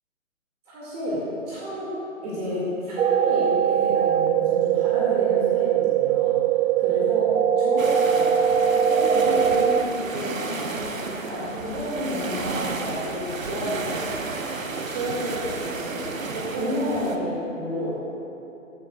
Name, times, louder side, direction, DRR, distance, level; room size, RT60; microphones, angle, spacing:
voice 1, 0.7-1.9 2.2-6.4 6.8-7.3 7.6-14.1 14.9-16.0 16.3-18.0, equal, 30° right, -7 dB, 2.1 m, -30 dB
sound 1, 3.0-9.8, right 9 dB, 60° right, 0.5 m, -21 dB
sound 2, 7.8-17.2, right 3 dB, 85° right, 0.9 m, -32 dB
14.5 x 9.8 x 2.3 m, 2.8 s
figure-of-eight pair, 135°, 39 cm